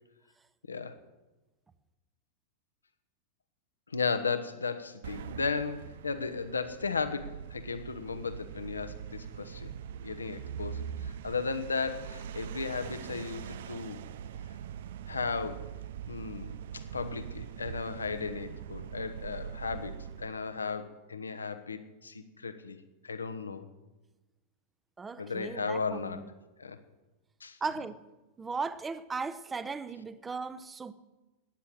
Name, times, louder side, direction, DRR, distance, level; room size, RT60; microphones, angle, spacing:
voice 1, 3.9-9.7 10.0-14.0 15.1-15.7 16.1-22.8 23.0-23.6 25.2-26.2 26.6-26.8 27.4-27.6, left 4 dB, 75° left, 1.1 m, -35 dB
sound 1, 5.0-20.5, right 9 dB, 55° right, 0.5 m, -42 dB
voice 2, 25.0-26.2 27.6-28.0 28.4-30.9, right 4 dB, 15° right, 0.9 m, -37 dB
14.5 x 9.9 x 7.8 m
figure-of-eight pair, 90°, 0 cm